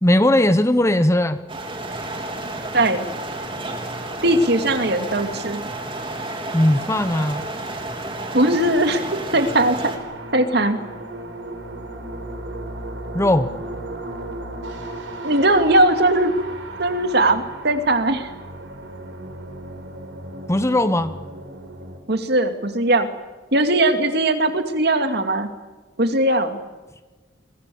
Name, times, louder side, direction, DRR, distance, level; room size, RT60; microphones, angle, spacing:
voice 1, 0.0-1.4 6.5-7.4 13.1-13.5 20.5-21.1, left 1 dB, 15° left, 12 dB, 0.9 m, -18 dB
sound 1, 1.5-10.0, right 2 dB, 25° right, 3.5 m, -31 dB
voice 2, 2.7-3.1 4.2-5.7 8.3-9.9 10.3-10.8 15.2-16.3 16.8-18.3 22.1-23.1 23.5-25.5 26.0-26.6, right 1 dB, 55° right, 8 dB, 2.4 m, -19 dB
sound 2, 9.9-22.0, right 2 dB, 75° right, 4.5 m, -35 dB
28.5 x 23.5 x 7.1 m, 1.2 s
head